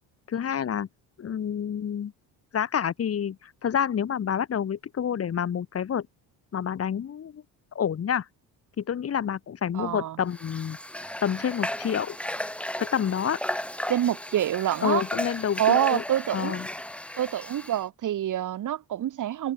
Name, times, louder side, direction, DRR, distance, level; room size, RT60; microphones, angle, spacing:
voice 1, 0.3-0.9 1.2-2.1 2.5-6.1 6.5-7.4 7.7-8.3 8.8-10.8 11.2-12.2 12.8-13.4 14.8-16.0 16.3-16.7, left 8 dB, 35° left, 2.8 m, -28 dB
voice 2, 9.7-10.2 13.9-15.0 15.6-16.6 17.2-19.5, right 11 dB, 50° right, 2.1 m, -26 dB
Water / Water tap faucet, 10.3-17.8, left 1 dB, 5° left, 1.7 m, -35 dB
cardioid pair, 150°, 40 cm